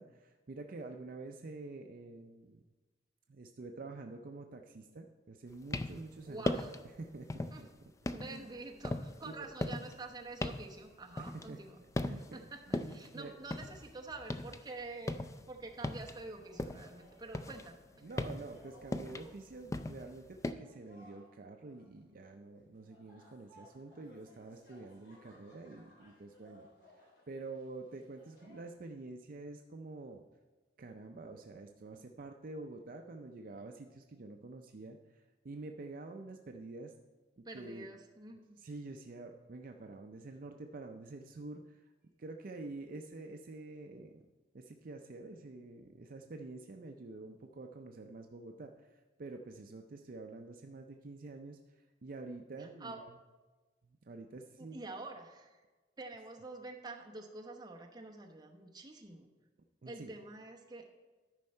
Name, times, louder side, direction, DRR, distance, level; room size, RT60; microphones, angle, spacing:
voice 1, 0.0-2.6 3.3-6.5 7.0-7.7 8.2-8.5 9.2-9.5 11.2-11.6 12.0-13.3 18.0-26.7 26.9-30.2 30.8-36.9 37.4-37.9 38.6-41.8 42.2-44.2 44.5-53.1 53.8-54.8 59.8-60.1, right 3 dB, 50° right, 4 dB, 0.5 m, -48 dB
sound 1, 5.5-6.1 6.4-6.9 7.3-7.7 8.1-11.7 12.0-12.4 12.7-14.6 14.9-16.9 17.3-20.5, left 2 dB, 15° left, 0.3 m, -38 dB
voice 2, 6.3-6.8 7.5-7.6 8.1-11.8 12.3-15.2 15.5-17.8 37.4-38.6 52.6-53.0 54.6-55.6 56.0-59.3 59.9-61.0, right 3 dB, 20° right, 1 dB, 1.0 m, -47 dB
sound 2, 16.3-17.4 17.7-19.5 19.7-20.2 20.6-28.6, equal, 70° left, 3.3 m, -62 dB
13.0 x 5.4 x 4.4 m, 1.3 s
head